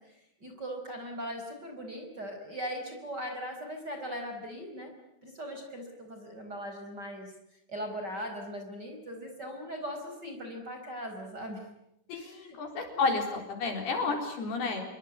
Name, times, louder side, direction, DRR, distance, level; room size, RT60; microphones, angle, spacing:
voice 1, 0.4-4.9 5.2-7.3 7.7-11.6 12.1-13.0 14.1-14.2, equal, 20° right, 4 dB, 4.8 m, -39 dB
voice 2, 12.1-14.8, left 4 dB, 55° left, 4 dB, 5.6 m, -31 dB
27.5 x 22.0 x 9.3 m, 0.79 s
omnidirectional pair, 5.5 m